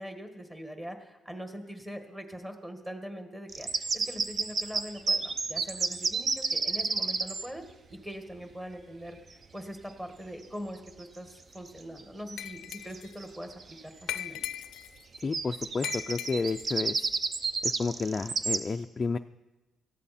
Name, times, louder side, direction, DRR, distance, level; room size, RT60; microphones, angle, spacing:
voice 1, 0.0-7.6 7.9-9.2 9.5-14.4, equal, 10° right, 5 dB, 1.7 m, -42 dB
sound 1, 3.5-7.5 10.9-11.0 11.6-12.0 12.3-12.4 12.7-13.8 15.1-18.6, right 4 dB, 35° right, 0.7 m, -31 dB
Glass, 12.4-13.2 14.1-15.0 15.8-16.7, left 12 dB, 85° left, 0.5 m, -38 dB
voice 2, 15.2-17.1 17.6-19.2, left 4 dB, 25° left, 5 dB, 0.4 m, -31 dB
17.5 x 14.0 x 4.3 m, 1.1 s
cardioid pair, 125°, 0 cm